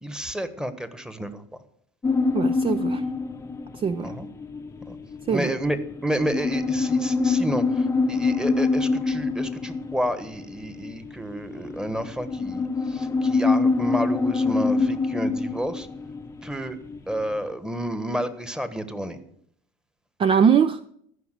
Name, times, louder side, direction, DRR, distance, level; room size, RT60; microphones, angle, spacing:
voice 1, 0.0-1.4 4.0-4.3 4.9-5.0 5.3-15.9 16.4-16.8 17.1-19.2, right 1 dB, 5° right, 1.4 m, -30 dB
sound 1, 2.0-17.5, left 3 dB, 15° left, 0.8 m, -26 dB
voice 2, 2.3-3.0 3.7-4.1 5.3-5.5 20.2-20.8, right 7 dB, 30° right, 0.6 m, -21 dB
14.5 x 5.9 x 7.5 m
supercardioid pair, 95°, 17 cm